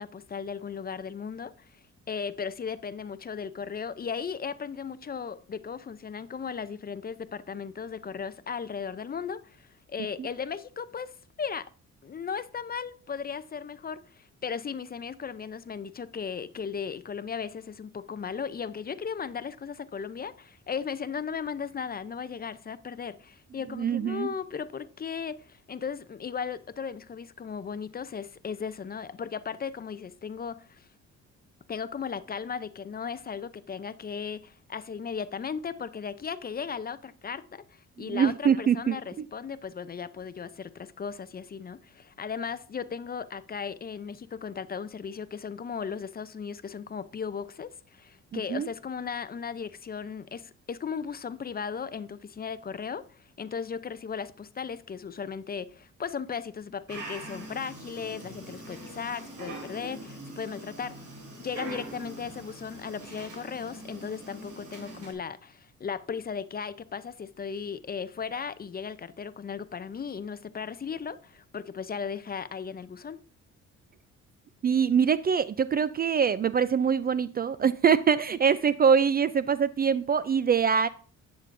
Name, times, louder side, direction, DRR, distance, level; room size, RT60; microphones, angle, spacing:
voice 1, 0.0-1.7 2.1-11.1 11.4-11.7 12.0-30.9 31.7-61.0 61.4-73.2, left 6 dB, 30° left, 0.5 m, -36 dB
voice 2, 23.8-24.3 38.1-39.3 48.3-48.7 74.6-80.9, right 7 dB, 30° right, 0.4 m, -24 dB
Dog, 56.9-65.1, right 1 dB, 75° right, 4.2 m, -43 dB
10.5 x 8.4 x 2.6 m
cardioid pair, 90°, 30 cm